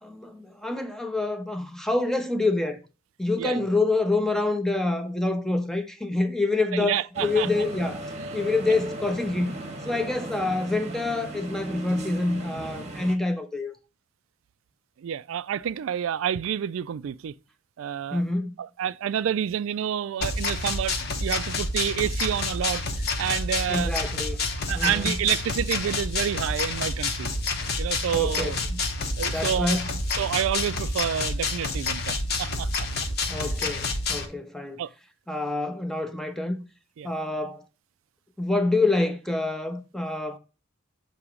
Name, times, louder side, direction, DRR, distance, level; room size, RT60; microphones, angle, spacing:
voice 1, 0.0-2.8 3.2-8.0 8.3-9.5 9.8-13.7 18.1-18.6 23.7-24.4 24.7-25.1 28.1-28.8 29.2-29.9 33.3-34.8 35.3-36.6 37.0-37.6 38.4-40.4, left 2 dB, ahead, 0.6 m, -27 dB
voice 2, 6.7-7.5 8.2-8.4 15.0-17.3 17.8-18.2 18.6-22.8 23.2-23.9 24.7-27.3 27.8-28.6 29.2-29.8 30.2-32.9 33.4-33.5 34.8-34.9 37.0-37.1, right 9 dB, 70° right, 0.3 m, -29 dB
sound 1, 7.1-13.2, right 1 dB, 30° right, 0.9 m, -37 dB
sound 2, 20.2-34.2, left 3 dB, 50° left, 0.9 m, -28 dB
7.0 x 2.9 x 4.8 m
head